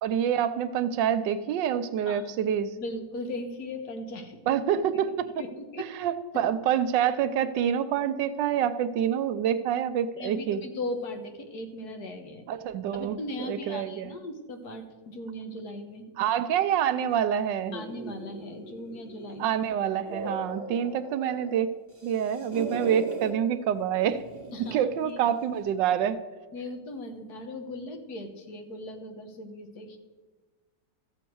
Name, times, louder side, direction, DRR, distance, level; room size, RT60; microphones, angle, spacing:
voice 1, 0.0-2.8 4.5-5.4 5.8-10.6 12.5-14.1 16.2-17.8 19.4-21.7 22.0-24.2 24.7-26.2, right 9 dB, 85° right, 12 dB, 1.3 m, -27 dB
voice 2, 2.1-2.5 2.8-4.4 5.4-5.8 10.2-12.5 12.9-16.2 17.7-19.5 24.5-25.2 26.5-30.0, left 1 dB, 60° left, 6 dB, 1.6 m, -38 dB
sound 1, 17.7-19.5 19.9-21.6 21.9-23.3 24.1-24.9, right 1 dB, 30° right, 2.0 m, -39 dB
14.0 x 7.4 x 4.6 m, 1.4 s
omnidirectional pair, 1.9 m